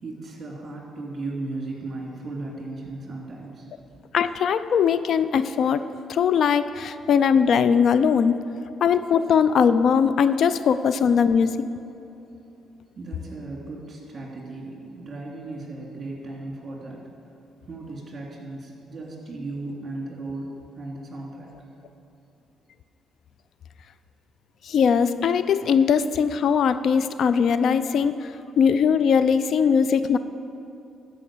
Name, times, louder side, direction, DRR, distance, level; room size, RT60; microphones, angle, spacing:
voice 1, 0.0-3.7 12.9-17.0 17.7-21.5, right 2 dB, 40° right, -2 dB, 2.9 m, -36 dB
voice 2, 4.1-5.8 6.1-8.3 8.8-11.6 24.6-28.3 28.6-30.2, left 6 dB, 65° left, 13 dB, 0.4 m, -20 dB
12.5 x 5.4 x 7.2 m, 2.9 s
cardioid pair, 90°, 0 cm